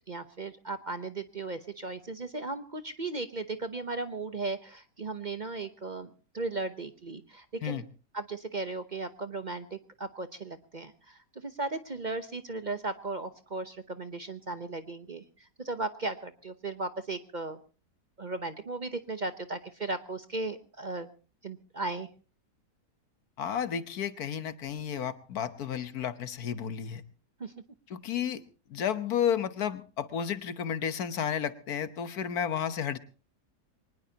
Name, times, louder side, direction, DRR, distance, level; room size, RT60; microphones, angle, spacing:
voice 1, 0.1-7.8 8.1-17.6 18.2-21.1 21.4-22.1 27.4-27.5, right 3 dB, 40° right, 10 dB, 0.7 m, -36 dB
voice 2, 23.4-27.0 27.9-28.4 28.7-33.0, left 8 dB, 65° left, 12 dB, 1.5 m, -32 dB
23.5 x 19.5 x 2.9 m, 0.35 s
omnidirectional pair, 1.8 m